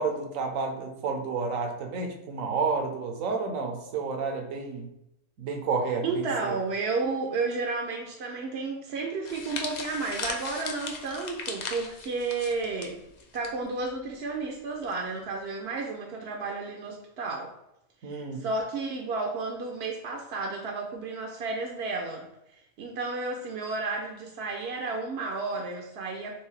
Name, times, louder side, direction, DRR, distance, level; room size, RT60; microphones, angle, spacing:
voice 1, 0.0-4.9 5.4-6.5 18.0-18.4, right 4 dB, 80° right, 4 dB, 1.2 m, -30 dB
voice 2, 6.0-13.0 13.3-17.5 18.0-26.4, right 3 dB, 60° right, 1 dB, 0.7 m, -32 dB
sound 1, 9.2-13.5 13.8-14.0 14.9-15.2, left 4 dB, 60° left, 0.4 m, -38 dB
4.6 x 3.1 x 3.2 m, 0.84 s
omnidirectional pair, 1.4 m